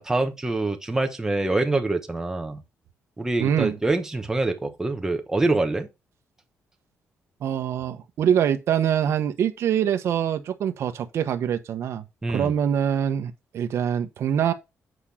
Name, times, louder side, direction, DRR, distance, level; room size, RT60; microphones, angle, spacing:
voice 1, 0.0-2.6 3.2-5.9 12.2-12.5, right 2 dB, 10° right, 1.0 m, -25 dB
voice 2, 3.4-3.8 7.4-14.5, right 9 dB, 60° right, 1.0 m, -24 dB
8.2 x 5.0 x 4.2 m
cardioid pair, 160°, 5 cm